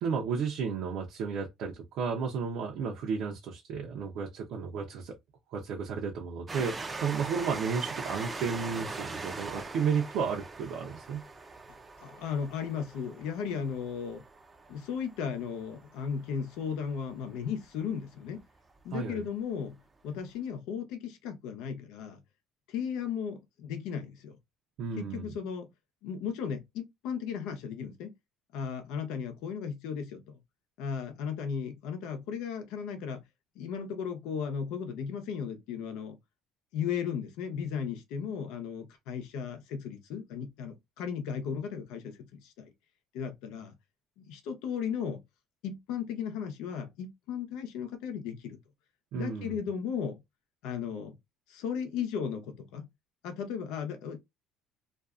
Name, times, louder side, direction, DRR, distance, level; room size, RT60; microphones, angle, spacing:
voice 1, 0.0-5.2 5.5-11.2 18.9-19.2 24.8-25.3 49.1-49.6, right 6 dB, 70° right, 0.6 m, -33 dB
Train, 6.5-17.7 18.4-18.5 18.7-18.8, right 3 dB, 20° right, 0.5 m, -42 dB
voice 2, 12.0-14.2 14.7-18.4 18.8-19.8 20.0-22.2 22.7-24.4 25.0-25.7 26.0-28.1 28.5-30.4 30.8-33.2 33.6-36.2 36.7-42.7 43.1-43.7 44.2-45.2 45.6-48.6 49.1-50.2 50.6-51.1 51.5-52.9 53.2-54.2, left 7 dB, 80° left, 0.8 m, -35 dB
2.5 x 2.3 x 2.4 m
cardioid pair, 115°, 0 cm